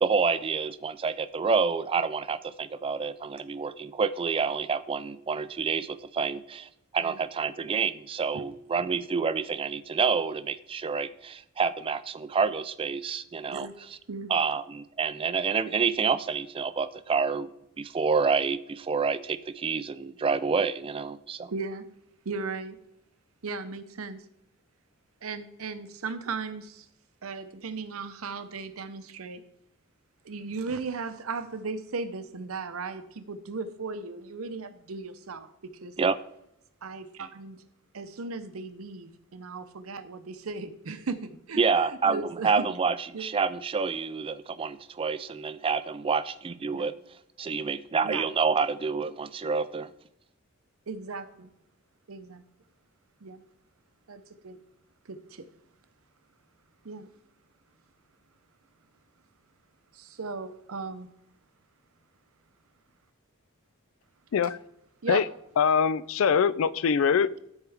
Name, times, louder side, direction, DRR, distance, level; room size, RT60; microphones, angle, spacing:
voice 1, 0.0-14.0 14.3-17.5 17.8-21.5 36.0-36.2 41.6-47.0 47.4-49.9, right 5 dB, 25° right, 13 dB, 0.3 m, -28 dB
voice 2, 21.5-21.9 22.2-22.8 23.4-24.2 25.2-26.9 27.2-29.4 30.2-35.5 35.8-35.9 36.8-37.6 37.9-41.6 42.0-42.7 43.1-43.3 46.7-46.9 48.0-48.2 50.9-51.5 52.1-52.4 53.2-53.4 54.1-54.6 55.1-55.5 56.8-57.1 59.9-61.1 65.0-65.3, right 4 dB, 85° right, 11 dB, 0.7 m, -36 dB
voice 3, 65.6-67.4, left 6 dB, 70° left, 17 dB, 0.4 m, -23 dB
13.0 x 4.4 x 3.5 m, 0.78 s
head